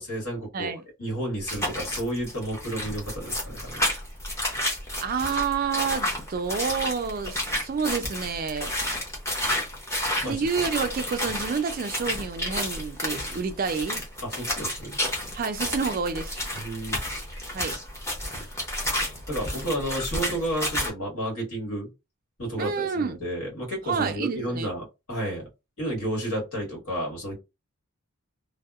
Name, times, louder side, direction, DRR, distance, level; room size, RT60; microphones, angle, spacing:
voice 1, 0.0-0.7 1.0-3.8 10.2-10.6 14.2-15.0 16.5-17.0 17.3-17.6 18.3-18.4 19.3-21.9 22.4-25.5 25.8-27.4, right 1 dB, 75° left, 1.5 m, -32 dB
sound 1, 1.5-20.9, left 1 dB, 10° left, 0.6 m, -31 dB
voice 2, 5.0-8.7 10.3-14.0 15.3-16.4 17.5-17.7 22.6-23.2 23.9-24.7, right 5 dB, 40° right, 0.3 m, -29 dB
2.7 x 2.0 x 2.3 m
head